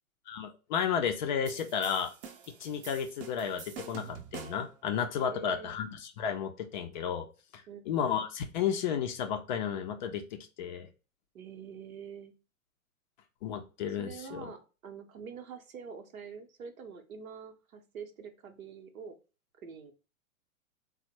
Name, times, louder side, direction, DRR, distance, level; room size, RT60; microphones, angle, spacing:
voice 1, 0.3-2.1 2.5-7.3 7.5-10.9 13.4-14.5, left 8 dB, 35° left, 5 dB, 0.4 m, -33 dB
sound 1, 1.5-4.8, right 7 dB, 40° right, 0.6 m, -46 dB
voice 2, 5.2-5.7 7.7-7.8 11.3-12.3 14.0-19.2 19.6-19.9, right 6 dB, 75° right, 5 dB, 0.8 m, -45 dB
3.3 x 2.0 x 2.8 m, 0.33 s
hypercardioid pair, 110°, 42 cm